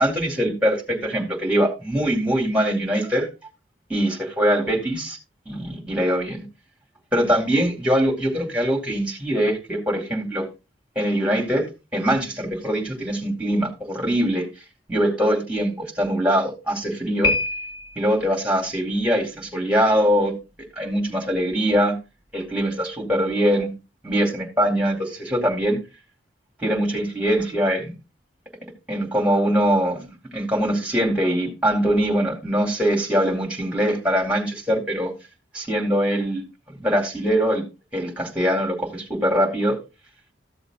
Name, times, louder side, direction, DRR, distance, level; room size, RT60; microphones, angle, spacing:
voice 1, 0.0-3.3 3.9-5.2 5.5-6.4 7.1-10.5 11.0-11.6 11.9-14.5 14.9-17.3 18.0-20.3 20.8-22.0 22.3-23.7 24.0-25.8 26.6-27.9 28.9-30.1 30.3-35.1 35.5-37.6 37.9-39.8, equal, 5° right, 2.5 m, -22 dB
Piano, 17.2-18.2, left 2 dB, 25° left, 2.5 m, -25 dB
14.5 x 7.0 x 2.5 m
head